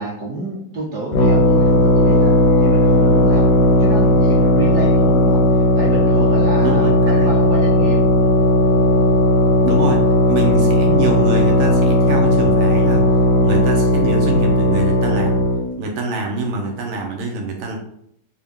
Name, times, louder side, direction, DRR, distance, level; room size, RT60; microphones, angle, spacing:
voice 1, 0.0-8.0, right 2 dB, 45° right, -5 dB, 1.5 m, -29 dB
sound 1, 1.1-15.6, left 1 dB, 80° left, 1.4 m, -15 dB
voice 2, 6.6-7.3 9.6-13.1 13.4-15.4 15.8-17.8, right 3 dB, 80° right, 1 dB, 0.7 m, -25 dB
4.3 x 2.2 x 3.5 m, 0.72 s
omnidirectional pair, 2.1 m